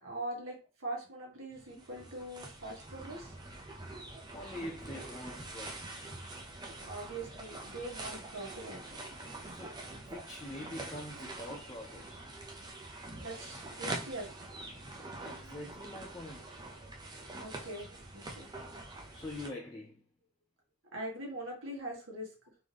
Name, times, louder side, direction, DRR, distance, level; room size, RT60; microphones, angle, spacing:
voice 1, 0.0-3.3 6.9-8.8 13.2-14.3 17.4-18.5 20.9-22.3, right 1 dB, 85° right, 1.8 m, -42 dB
sound 1, 1.5-19.5, right 2 dB, 20° right, 0.6 m, -45 dB
voice 2, 4.3-6.0 9.5-12.3 15.0-16.6 19.1-20.0, left 1 dB, 20° left, 0.6 m, -45 dB
3.9 x 3.1 x 3.4 m
head